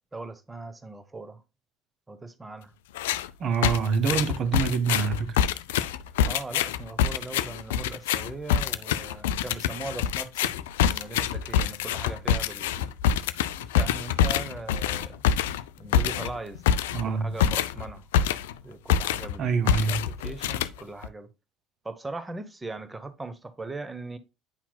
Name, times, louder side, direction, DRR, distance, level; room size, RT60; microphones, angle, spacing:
voice 1, 0.1-1.4 2.1-2.7 6.2-12.9 13.7-15.2 15.8-16.6 17.0-18.1 18.6-21.3 21.8-24.2, right 3 dB, 15° right, 0.9 m, -39 dB
sound 1, 2.9-3.3 3.6-18.6 18.9-19.4 19.7-21.1, left 9 dB, 65° left, 0.3 m, -26 dB
voice 2, 3.4-5.4 16.9-17.4 19.4-20.1, right 5 dB, 40° right, 0.9 m, -26 dB
8.8 x 5.8 x 2.2 m
figure-of-eight pair, 60°, 0 cm